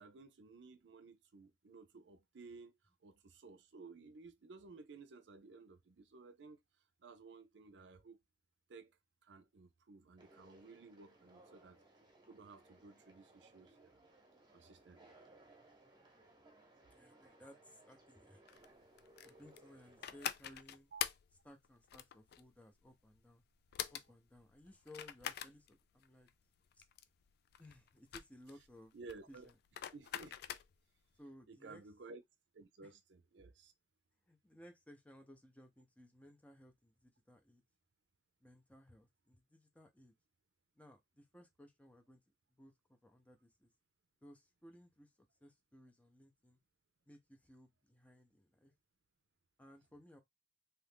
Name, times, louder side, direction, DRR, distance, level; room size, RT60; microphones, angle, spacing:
voice 1, 0.0-6.6 7.0-8.2 8.7-8.9 9.2-11.8 12.3-14.0 14.5-15.2 20.9-21.0 28.9-29.5 29.9-30.4 31.5-32.2 32.5-33.7, right 4 dB, 75° right, 0.5 m, -56 dB
Conversation, 10.2-20.2, right 2 dB, 25° right, 0.9 m, -64 dB
voice 2, 16.9-18.6 19.2-20.9 21.4-23.4 23.9-26.3 26.8-26.9 27.6-28.9 29.3-29.6 31.2-31.8 32.8-32.9 34.3-37.6 38.4-40.1 40.8-42.2 42.5-43.7 44.2-46.6 47.1-48.7 49.6-50.2, left 1 dB, 10° left, 0.6 m, -60 dB
sound 1, 18.5-31.0, left 10 dB, 60° left, 0.3 m, -45 dB
2.8 x 2.5 x 3.4 m
head